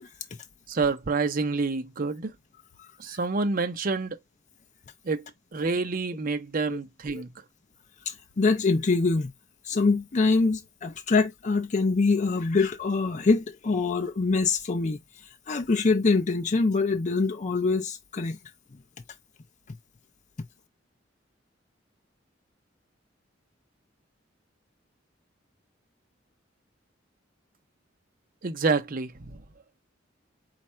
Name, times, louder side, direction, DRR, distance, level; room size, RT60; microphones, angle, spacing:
voice 1, 0.7-2.3 3.0-4.2 5.0-5.2 5.5-7.3 28.4-29.4, right 4 dB, 45° right, 0.6 m, -28 dB
voice 2, 8.1-9.3 9.7-15.0 15.5-18.4, left 3 dB, 40° left, 0.5 m, -24 dB
4.3 x 2.4 x 4.3 m
head